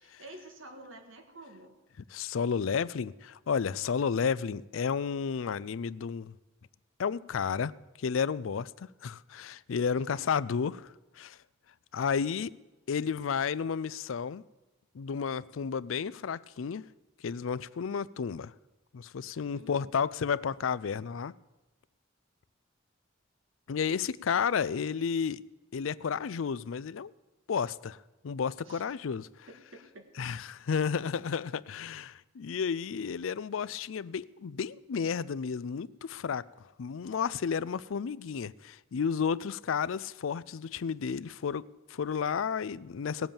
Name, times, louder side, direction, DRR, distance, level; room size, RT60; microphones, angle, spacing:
voice 1, 0.0-1.8 10.1-10.2 19.5-19.9 28.7-28.8 29.5-30.3, right 1 dB, 75° right, 1.8 m, -50 dB
voice 2, 2.1-6.3 7.0-7.7 8.0-11.4 11.9-12.5 12.9-14.4 14.9-16.9 17.2-18.5 18.9-21.3 23.7-25.4 25.7-27.1 27.5-28.0 28.2-29.5 30.2-36.5 36.8-43.3, left 6 dB, 75° left, 0.4 m, -32 dB
18.0 x 7.8 x 7.1 m
head